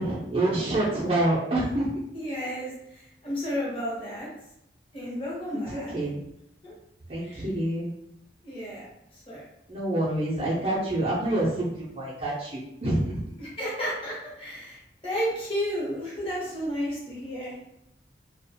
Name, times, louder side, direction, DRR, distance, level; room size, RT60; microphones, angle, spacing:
voice 1, 0.0-1.9 5.7-6.2 7.1-7.9 9.7-13.2, right 1 dB, 35° right, -6 dB, 0.5 m, -27 dB
voice 2, 2.1-4.3 4.9-5.9 6.6-6.8 7.2-7.4 8.4-8.9 9.1-9.4 13.4-17.6, equal, 30° left, -6 dB, 0.8 m, -32 dB
2.4 x 2.1 x 2.7 m, 0.80 s
head